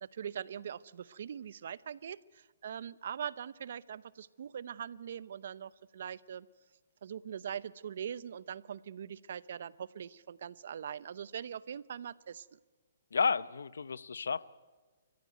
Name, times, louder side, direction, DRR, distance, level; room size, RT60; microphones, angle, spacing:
voice 1, 0.0-6.5 7.0-12.6, right 8 dB, 65° right, 19 dB, 0.8 m, -42 dB
voice 2, 13.1-14.5, left 5 dB, 85° left, 19 dB, 0.8 m, -31 dB
28.5 x 15.0 x 9.3 m, 1.3 s
hypercardioid pair, 150°, 0 cm